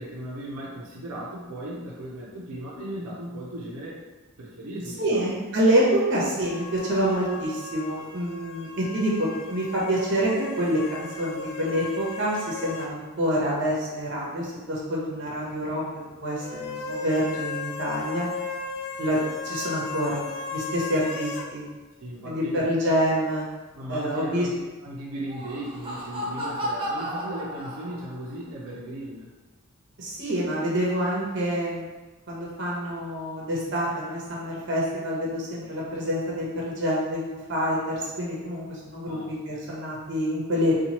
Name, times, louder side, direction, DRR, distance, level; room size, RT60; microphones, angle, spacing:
voice 1, 0.0-4.1 4.4-5.4 22.0-22.7 23.7-29.3 39.0-39.7, right 1 dB, 90° right, -5 dB, 0.6 m, -37 dB
voice 2, 5.0-10.3 10.6-15.8 16.2-18.3 19.0-19.2 19.4-20.2 20.5-21.6 22.2-23.4 23.9-24.5 30.0-31.9 32.3-40.7, equal, 55° right, -5 dB, 0.8 m, -27 dB
sound 1, 6.4-13.0 13.2-13.3 16.4-21.5, left 4 dB, 60° left, 0.3 m, -36 dB
Laughter, 25.1-28.3, equal, 25° right, 0.4 m, -33 dB
2.9 x 2.3 x 2.9 m, 1.2 s
head